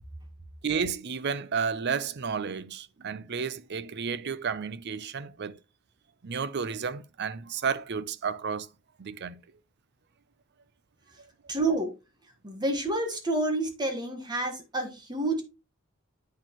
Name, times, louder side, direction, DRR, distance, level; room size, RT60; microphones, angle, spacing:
voice 1, 0.6-5.6 6.2-8.7 9.0-9.4, right 6 dB, 55° right, 0.6 m, -32 dB
voice 2, 11.5-11.9 12.4-15.4, right 2 dB, 20° right, 1.4 m, -29 dB
8.4 x 6.2 x 3.0 m
head